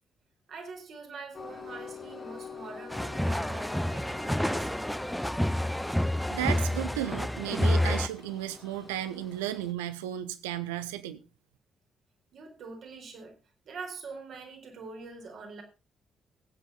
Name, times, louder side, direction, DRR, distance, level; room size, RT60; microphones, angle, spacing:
voice 1, 0.5-4.9 12.3-13.4 13.7-15.6, right 4 dB, 55° right, 4.3 m, -44 dB
Train, 1.3-9.7, left 6 dB, 35° left, 1.8 m, -47 dB
sound 1, 2.9-8.1, left 1 dB, 5° left, 0.6 m, -29 dB
voice 2, 6.3-11.2, right 12 dB, 75° right, 1.1 m, -34 dB
15.5 x 9.9 x 4.1 m
figure-of-eight pair, 40°, 0 cm